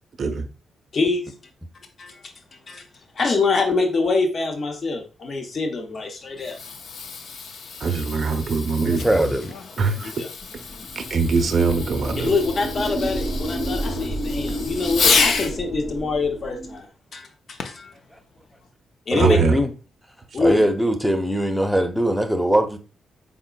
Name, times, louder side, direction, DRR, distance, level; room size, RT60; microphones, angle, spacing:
voice 1, 0.9-1.3 2.0-2.3 2.7-2.8 3.1-6.6 10.0-10.3 12.1-16.9 17.1-17.9 19.1-19.4 20.3-20.7, left 3 dB, 55° left, 0.8 m, -25 dB
Fireworks, 6.2-15.6 17.6-17.9 18.6-18.7, left 5 dB, 70° left, 0.4 m, -29 dB
voice 2, 7.8-9.3 9.8-10.1 11.0-12.3 19.2-19.6, right 4 dB, 55° right, 0.5 m, -22 dB
voice 3, 8.8-9.6 18.1-18.2 19.1-19.7 20.4-22.8, right 1 dB, ahead, 0.7 m, -21 dB
sound 1, 10.7-16.8, equal, 30° left, 1.5 m, -30 dB
3.9 x 3.7 x 2.2 m
supercardioid pair, 60°, 0 cm